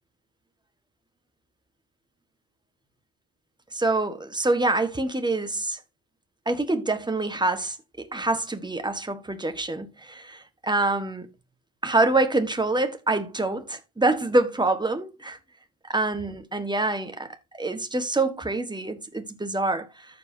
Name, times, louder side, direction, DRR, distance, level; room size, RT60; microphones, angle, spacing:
voice 1, 3.7-5.8 6.5-11.3 11.8-15.4 15.9-17.3 17.6-20.1, right 2 dB, 10° right, 1.5 m, -26 dB
13.5 x 5.1 x 2.7 m
cardioid pair, 80°, 49 cm